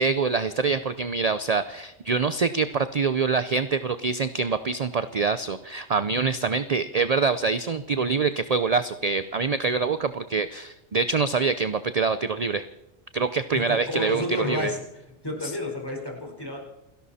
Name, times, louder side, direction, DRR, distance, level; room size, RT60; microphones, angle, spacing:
voice 1, 0.0-12.6 13.1-14.7 15.4-15.5, right 4 dB, 40° right, 12 dB, 0.7 m, -25 dB
voice 2, 13.5-14.8 15.2-16.6, left 1 dB, 20° left, 0 dB, 4.7 m, -30 dB
29.0 x 12.0 x 4.2 m, 0.95 s
omnidirectional pair, 1.2 m